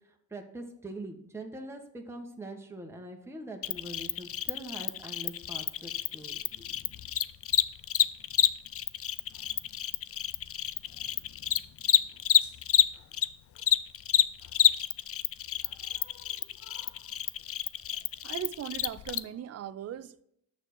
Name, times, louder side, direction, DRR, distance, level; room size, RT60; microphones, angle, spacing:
voice 1, 0.3-6.7, right 1 dB, 5° right, 1.3 m, -43 dB
Cricket, 3.6-13.3 13.6-19.2, left 11 dB, 30° left, 0.4 m, -28 dB
voice 2, 18.2-20.2, right 10 dB, 35° right, 0.5 m, -38 dB
6.5 x 6.1 x 6.1 m
hypercardioid pair, 50°, 49 cm